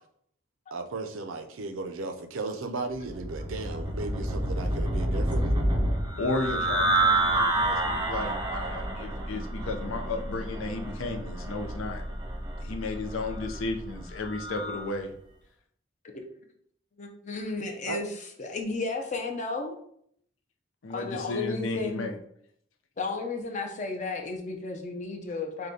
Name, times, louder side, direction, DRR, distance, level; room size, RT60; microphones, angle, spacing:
voice 1, 0.7-5.6 17.9-18.0, right 3 dB, 85° right, 0.5 m, -35 dB
sound 1, 3.0-14.9, right 1 dB, 20° right, 0.5 m, -29 dB
voice 2, 6.2-12.0 12.6-15.1 20.8-22.2, left 2 dB, 85° left, 0.6 m, -34 dB
voice 3, 17.0-18.1 18.4-19.8 20.9-22.1 23.0-25.7, left 3 dB, 35° left, 0.6 m, -33 dB
6.4 x 2.2 x 2.8 m
head